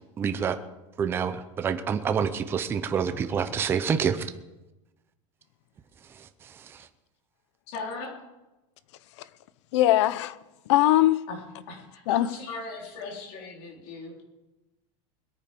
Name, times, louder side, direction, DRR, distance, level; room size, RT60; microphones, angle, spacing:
voice 1, 0.2-0.6 1.0-4.3, right 7 dB, 15° right, 0.6 m, -27 dB
voice 2, 7.7-8.1 11.3-11.4 11.7-14.2, left 3 dB, 45° left, 4.3 m, -38 dB
voice 3, 9.7-10.3 10.7-11.2 12.1-12.3, left 15 dB, 60° left, 0.8 m, -20 dB
21.0 x 9.1 x 5.3 m
supercardioid pair, 180°, 16 cm